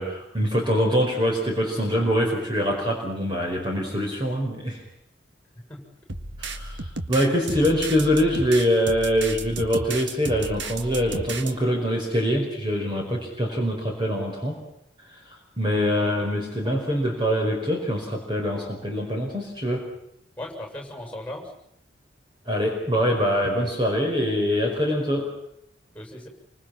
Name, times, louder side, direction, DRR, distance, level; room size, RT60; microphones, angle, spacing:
voice 1, 0.0-4.8 6.4-14.6 15.6-19.9 22.5-25.3, equal, 25° right, 0 dB, 5.0 m, -24 dB
sound 1, 6.1-11.5, right 3 dB, 75° right, 1.8 m, -33 dB
voice 2, 20.4-21.5 25.9-26.3, left 1 dB, 5° left, 2 dB, 7.1 m, -38 dB
27.5 x 25.0 x 5.9 m, 0.76 s
head